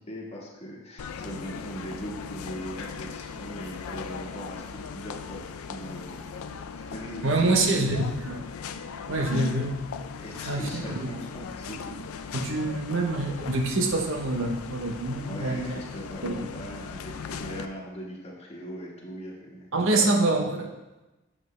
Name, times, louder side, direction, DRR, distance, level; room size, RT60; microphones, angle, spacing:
voice 1, 0.0-5.4 5.7-7.8 10.2-12.6 15.2-20.1, equal, 30° left, -3 dB, 1.4 m, -40 dB
sound 1, 1.0-17.7, left 6 dB, 85° left, 0.4 m, -38 dB
voice 2, 7.2-8.4 9.1-9.8 10.5-11.1 12.3-15.8 16.2-16.5 19.7-20.7, right 2 dB, 65° right, 3 dB, 0.8 m, -26 dB
7.1 x 5.9 x 3.2 m, 1.1 s
head